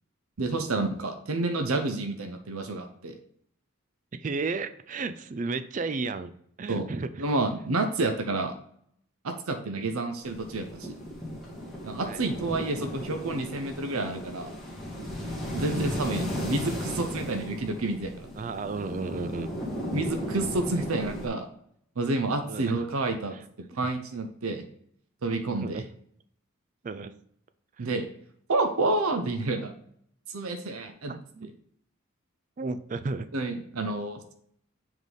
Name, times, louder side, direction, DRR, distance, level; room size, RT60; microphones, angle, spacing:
voice 1, 0.4-3.2 6.7-6.9 7.2-8.5 9.2-10.9 11.8-14.5 15.5-18.3 19.9-21.5 22.0-24.7 25.2-25.8 27.8-28.1 28.5-29.7 30.3-31.1 33.3-34.3, right 2 dB, 85° right, 6 dB, 0.7 m, -29 dB
voice 2, 4.1-6.3 6.6-7.3 9.6-10.0 12.0-12.2 15.6-15.8 18.3-19.5 22.5-22.9 23.3-23.9 25.6-25.9 26.8-27.1 27.8-27.9 31.1-31.5 32.6-33.3 33.8-33.9, right 3 dB, 35° right, 11 dB, 0.4 m, -34 dB
sound 1, 10.2-21.3, equal, ahead, 1.8 m, -35 dB
7.3 x 3.9 x 3.4 m, 0.67 s
head